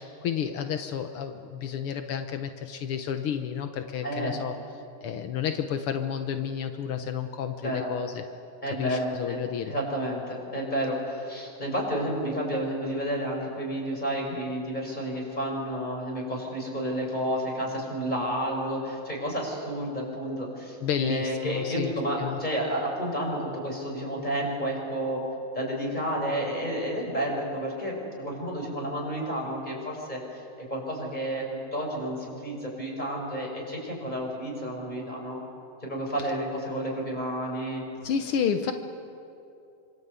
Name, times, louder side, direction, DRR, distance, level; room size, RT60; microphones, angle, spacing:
voice 1, 0.0-4.6 5.0-8.2 8.8-9.7 20.8-21.9 22.2-22.4 38.0-38.7, left 8 dB, 75° left, 7 dB, 1.2 m, -31 dB
voice 2, 4.0-4.4 7.6-7.9 8.6-25.2 25.5-35.4 35.8-37.8, equal, 10° left, -1 dB, 6.5 m, -31 dB
27.5 x 26.0 x 8.3 m, 2.6 s
omnidirectional pair, 3.8 m